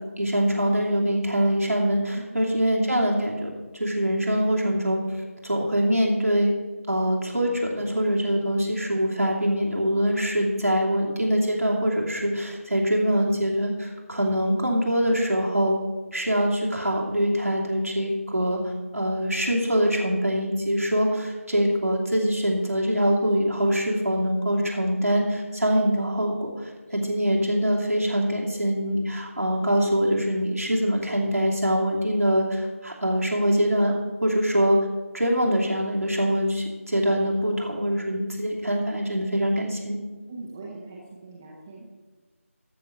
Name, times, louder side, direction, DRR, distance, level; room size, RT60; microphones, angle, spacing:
voice 1, 0.2-5.0 5.4-6.5 6.9-15.7 16.1-18.6 18.9-33.9 34.2-34.8 35.1-40.0, equal, 90° right, -3 dB, 2.8 m, -24 dB
voice 2, 26.9-27.2 40.3-42.0, right 3 dB, 10° right, -4 dB, 0.7 m, -42 dB
13.5 x 5.0 x 6.8 m, 1.3 s
figure-of-eight pair, 170°, 8 cm